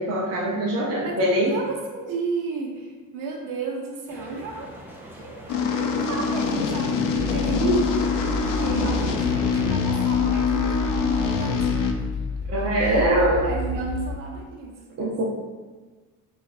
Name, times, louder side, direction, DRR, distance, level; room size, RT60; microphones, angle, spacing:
voice 1, 0.0-1.5 7.6-7.7 12.5-13.4 15.0-15.2, right 1 dB, 50° right, -5 dB, 0.7 m, -22 dB
voice 2, 1.0-5.5 5.7-8.0 8.6-11.9 12.8-13.1 13.4-15.2, right 4 dB, 90° right, 0 dB, 0.8 m, -33 dB
sound 1, 4.1-9.7, right 1 dB, 5° right, 0.6 m, -41 dB
sound 2, 5.5-11.9, left 6 dB, 90° left, 0.5 m, -24 dB
sound 3, 7.1-14.2, left 4 dB, 35° left, 0.5 m, -30 dB
5.1 x 2.5 x 2.5 m, 1.3 s
cardioid pair, 125°, 32 cm